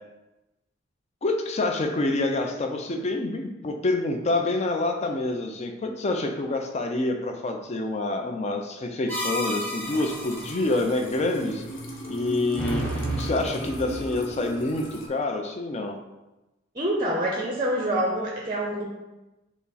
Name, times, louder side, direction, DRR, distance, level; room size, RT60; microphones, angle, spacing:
voice 1, 1.2-11.6 12.1-12.8 13.2-16.0, left 2 dB, 35° left, 4 dB, 0.4 m, -27 dB
sound 1, 9.1-10.7 12.6-14.1, equal, 10° left, 0.7 m, -31 dB
sound 2, 9.8-15.1, right 1 dB, 70° left, 0.8 m, -37 dB
voice 2, 16.8-18.8, right 1 dB, 25° right, -2 dB, 0.5 m, -26 dB
5.7 x 2.0 x 4.1 m, 1.0 s
head